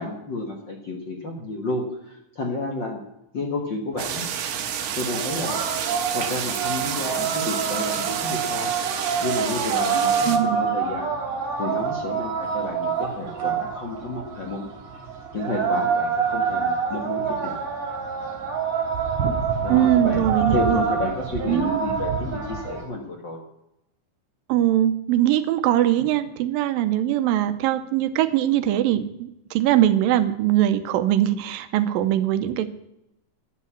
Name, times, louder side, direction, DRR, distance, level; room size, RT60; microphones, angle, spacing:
voice 1, 0.0-3.0 3.3-4.2 4.9-5.6 6.1-8.7 9.2-11.1 11.6-14.7 15.3-17.5 19.6-20.2 20.5-23.4, left 2 dB, 50° left, 0 dB, 1.4 m, -31 dB
sound 1, 4.0-22.8, right 6 dB, 50° right, 4.0 m, -27 dB
sound 2, 4.0-10.4, right 9 dB, 70° right, 2.3 m, -29 dB
voice 2, 10.3-10.6 19.7-20.9 21.5-21.8 24.5-32.7, right 12 dB, 90° right, 11 dB, 2.4 m, -21 dB
11.5 x 8.3 x 8.1 m, 0.84 s
omnidirectional pair, 4.1 m